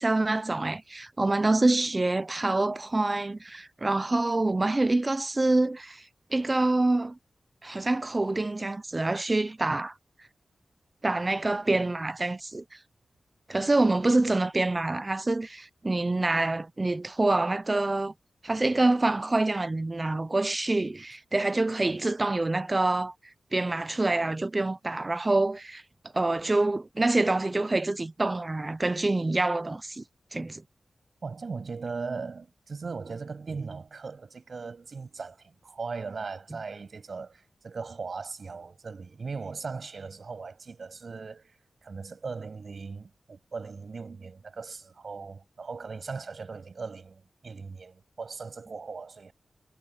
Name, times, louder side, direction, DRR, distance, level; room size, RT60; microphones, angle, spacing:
voice 1, 0.0-6.0 6.3-7.2 7.6-9.9 11.0-12.6 13.5-18.1 18.4-23.1 23.5-25.8 26.1-30.0 30.3-30.6, right 2 dB, 25° right, 0.7 m, -26 dB
voice 2, 31.2-41.6 41.8-49.3, right 4 dB, 55° right, 7.7 m, -38 dB
wide cardioid pair, 135°, 0 cm